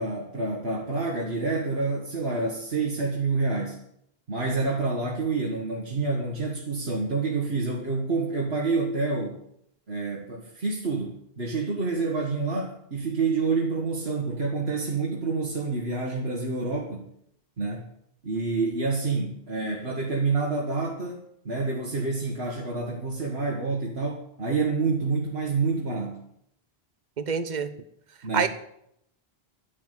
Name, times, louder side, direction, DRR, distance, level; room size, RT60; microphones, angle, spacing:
voice 1, 0.0-3.8 4.3-9.4 9.9-17.1 17.6-17.9 18.2-26.2 28.2-28.5, right 3 dB, 85° right, -1 dB, 2.0 m, -28 dB
voice 2, 27.2-27.7 28.3-28.5, right 6 dB, 45° right, 10 dB, 1.1 m, -26 dB
11.5 x 11.0 x 8.3 m, 0.73 s
omnidirectional pair, 1.0 m